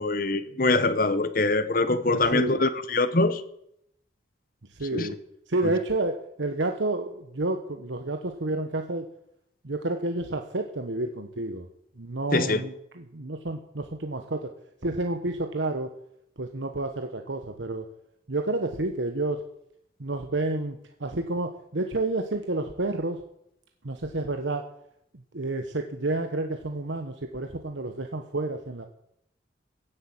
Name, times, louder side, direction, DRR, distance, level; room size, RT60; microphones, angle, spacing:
voice 1, 0.0-3.4 4.9-5.1 12.3-12.6, left 2 dB, 45° left, 1.0 m, -23 dB
voice 2, 2.1-2.6 4.7-5.2 5.5-9.1 9.6-11.7 12.0-14.5 14.8-15.9 16.4-17.9 18.3-19.4 20.0-23.2 23.8-24.6 25.3-28.9, right 2 dB, 80° right, 1.2 m, -30 dB
16.0 x 8.2 x 8.8 m
head